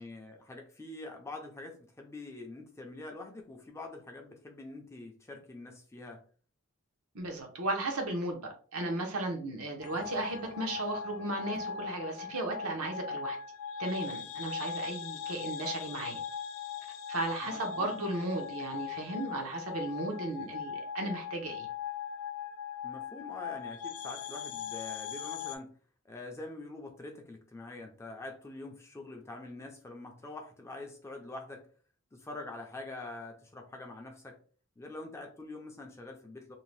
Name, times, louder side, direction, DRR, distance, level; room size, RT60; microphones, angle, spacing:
voice 1, 0.0-6.2 17.4-17.9 22.8-25.7 26.0-31.7 32.1-34.4 34.8-36.5, left 2 dB, 10° left, 2 dB, 0.3 m, -45 dB
voice 2, 7.1-13.4 13.8-16.2 17.1-21.7, right 2 dB, 85° right, 2 dB, 0.8 m, -35 dB
sound 1, 9.8-25.6, left 7 dB, 80° left, 0.4 m, -40 dB
2.6 x 2.1 x 3.1 m, 0.42 s
head